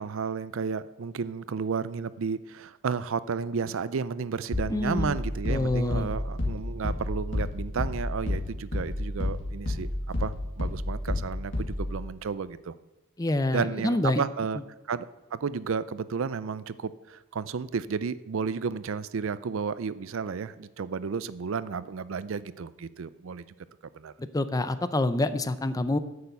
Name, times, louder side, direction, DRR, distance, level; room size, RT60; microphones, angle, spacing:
voice 1, 0.0-9.9 10.2-12.7 13.5-14.6 14.9-23.4 23.9-24.1, right 5 dB, 60° right, 16 dB, 0.5 m, -32 dB
sound 1, 4.5-12.0, left 1 dB, 60° left, 2.4 m, -31 dB
voice 2, 4.7-5.2 5.5-6.1 13.2-14.2 24.2-26.0, left 2 dB, 15° left, 12 dB, 0.5 m, -27 dB
9.5 x 6.8 x 8.1 m, 1.0 s
head